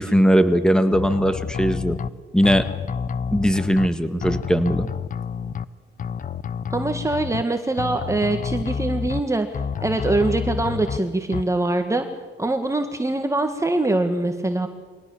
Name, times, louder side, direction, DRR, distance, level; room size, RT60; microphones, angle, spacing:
voice 1, 0.0-2.0 2.3-2.7 3.3-4.9, equal, 5° left, 10 dB, 1.8 m, -19 dB
sound 1, 0.9-2.1 2.4-3.9 4.2-5.6 6.0-7.4 7.8-9.2 9.5-11.0 11.3-11.4, left 6 dB, 40° left, 0.8 m, -29 dB
voice 2, 6.7-9.5 9.8-12.0 12.4-14.7, right 2 dB, 15° right, 6 dB, 1.7 m, -23 dB
23.5 x 18.0 x 7.2 m, 1.4 s
cardioid pair, 90°, 20 cm